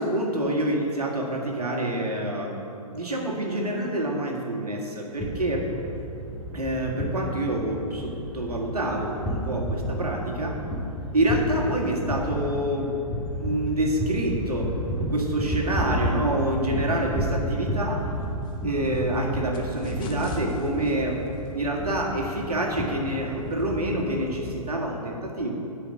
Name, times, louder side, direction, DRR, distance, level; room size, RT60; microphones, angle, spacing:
voice 1, 0.0-2.5 2.9-5.7 6.5-10.6 11.1-13.0 13.4-18.1 18.6-21.2 21.5-25.5, right 1 dB, 85° right, 0 dB, 1.9 m, -27 dB
sound 1, 5.2-24.5, equal, 5° left, 1.9 m, -32 dB
sound 2, 17.9-24.1, left 2 dB, 25° left, 1.0 m, -42 dB
10.0 x 5.2 x 8.1 m, 2.8 s
figure-of-eight pair, 120°, 19 cm